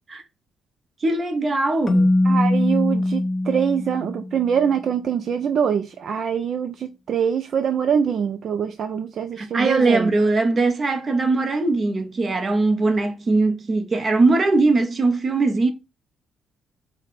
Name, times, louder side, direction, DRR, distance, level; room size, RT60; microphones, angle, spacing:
voice 1, 1.0-2.2 9.4-15.7, right 3 dB, 35° right, 0.8 m, -20 dB
Keyboard (musical), 1.9-4.6, left 1 dB, 40° left, 0.5 m, -21 dB
voice 2, 2.2-10.1, right 7 dB, 60° right, 0.3 m, -24 dB
5.0 x 2.1 x 3.9 m
cardioid pair, 90°, 0 cm